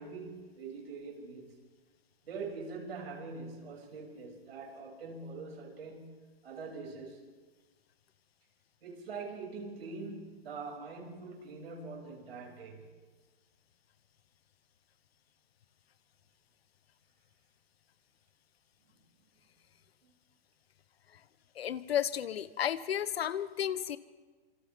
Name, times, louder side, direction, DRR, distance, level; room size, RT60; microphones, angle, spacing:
voice 1, 0.0-1.5 2.2-6.1 6.4-7.3 8.8-12.8 20.0-20.1, right 4 dB, 80° right, -1 dB, 7.0 m, -43 dB
voice 2, 21.6-24.0, left 10 dB, 80° left, 14 dB, 1.2 m, -33 dB
27.0 x 26.5 x 3.6 m, 1.4 s
hypercardioid pair, 125°, 30 cm